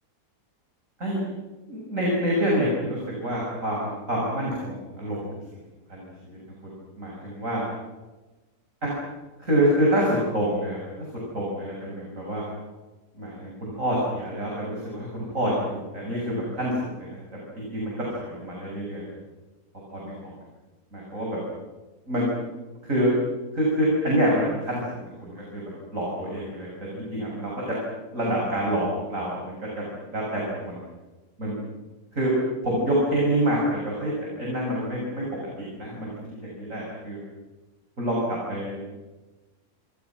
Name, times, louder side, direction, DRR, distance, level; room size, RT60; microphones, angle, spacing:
voice 1, 1.7-5.3 5.9-6.1 7.0-7.6 8.8-8.9 9.4-11.1 11.3-12.4 13.1-19.0 19.9-20.3 20.9-21.4 22.1-22.5 22.8-23.1 23.5-24.8 25.2-27.8 28.1-30.8 31.4-31.5 32.1-32.3 32.6-35.2 35.6-37.2 38.0-38.8, equal, 50° right, -4 dB, 7.6 m, -27 dB
29.5 x 27.0 x 6.2 m, 1.2 s
omnidirectional pair, 1.7 m